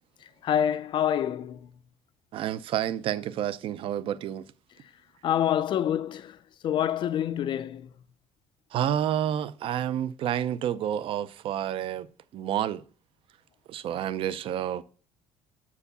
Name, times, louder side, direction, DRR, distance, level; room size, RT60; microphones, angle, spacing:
voice 1, 0.2-1.7 4.8-4.9 5.2-7.9, left 10 dB, 40° left, 0.4 m, -27 dB
voice 2, 2.3-4.4 8.7-12.8 13.7-14.8, right 10 dB, 45° right, 0.5 m, -29 dB
7.0 x 4.8 x 6.7 m
cardioid pair, 155°, 12 cm